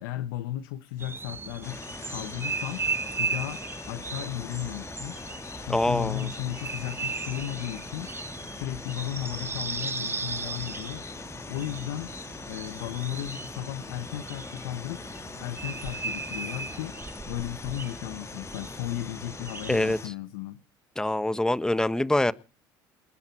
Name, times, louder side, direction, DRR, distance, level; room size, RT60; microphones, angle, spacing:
voice 1, 0.0-1.8 2.1-2.9 3.2-5.2 5.6-8.1 8.5-11.1 11.5-12.1 12.5-15.0 15.4-17.0 17.3-20.6, left 13 dB, 85° left, 1.1 m, -35 dB
sound 1, 1.0-20.0, right 4 dB, 20° right, 1.0 m, -37 dB
sound 2, 1.6-20.1, left 4 dB, 25° left, 1.7 m, -42 dB
voice 2, 5.7-6.3 19.7-20.0 21.0-22.3, left 1 dB, 5° left, 1.3 m, -25 dB
29.0 x 10.5 x 4.5 m
supercardioid pair, 85°, 11 cm